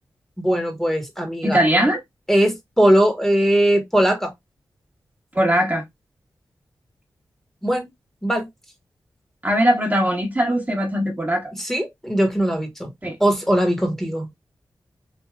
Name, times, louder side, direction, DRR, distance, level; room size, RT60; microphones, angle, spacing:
voice 1, 0.4-1.6 2.3-4.3 7.6-7.9 8.2-8.5 11.6-12.9 13.2-14.3, right 1 dB, 5° left, 1.2 m, -20 dB
voice 2, 1.4-2.0 5.3-5.8 9.4-11.5 13.0-13.2, equal, 20° right, 1.1 m, -20 dB
3.3 x 2.5 x 2.3 m
cardioid pair, 40°, 8 cm